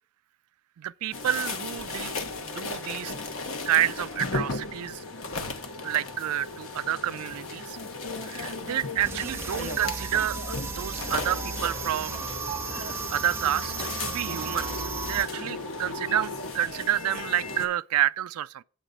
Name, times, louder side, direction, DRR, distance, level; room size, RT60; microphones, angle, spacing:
voice 1, 0.8-2.1 2.4-3.1 3.7-5.0 5.8-7.8 8.2-12.3 12.7-18.6, right 11 dB, 85° right, 0.3 m, -29 dB
sound 1, 1.1-17.7, left 2 dB, 65° left, 1.1 m, -35 dB
sound 2, 9.0-15.2, right 4 dB, 10° right, 0.7 m, -35 dB
8.2 x 3.9 x 6.7 m
head